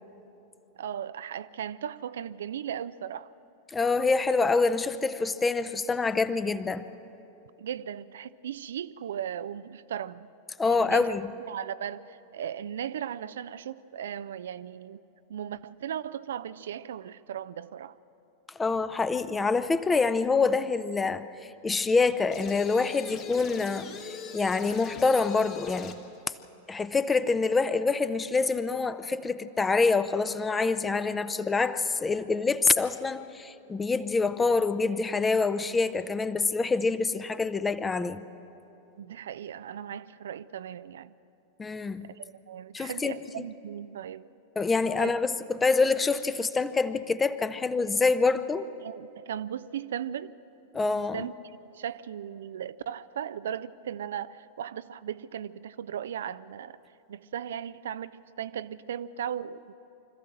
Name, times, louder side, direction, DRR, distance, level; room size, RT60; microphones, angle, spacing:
voice 1, 0.8-3.3 7.6-10.3 10.6-11.2 11.5-15.0 15.3-17.9 39.0-41.1 42.0-44.3 45.0-45.1 48.8-50.3 51.1-51.3 51.7-56.8 57.1-59.7, right 9 dB, 60° right, 0.4 m, -37 dB
voice 2, 3.7-6.9 10.6-11.3 18.6-23.9 24.3-26.0 26.7-38.2 41.6-42.1 42.7-43.2 44.6-48.7 50.7-51.3, left 4 dB, 15° left, 0.7 m, -26 dB
sound 1, 22.3-26.1, left 7 dB, 35° left, 1.6 m, -41 dB
25.5 x 14.0 x 7.7 m
figure-of-eight pair, 90°, 0 cm